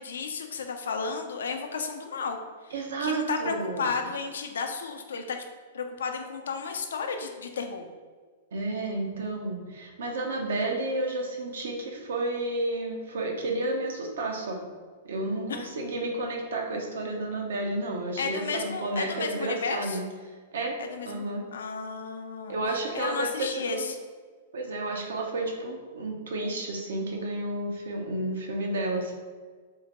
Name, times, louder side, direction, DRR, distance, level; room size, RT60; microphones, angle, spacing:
voice 1, 0.0-2.4 2.6-2.7 3.0-5.5 5.7-7.9 15.5-15.7 18.2-20.0 20.8-21.3 21.5-22.6 22.9-24.0, left 5 dB, 80° left, 5 dB, 0.4 m, -33 dB
voice 2, 2.7-3.9 8.5-14.6 15.0-20.0 20.5-20.8 21.1-21.4 22.5-23.9 24.5-29.1, right 2 dB, 80° right, 1 dB, 0.6 m, -31 dB
3.6 x 2.1 x 2.9 m, 1.5 s
hypercardioid pair, 120°, 0 cm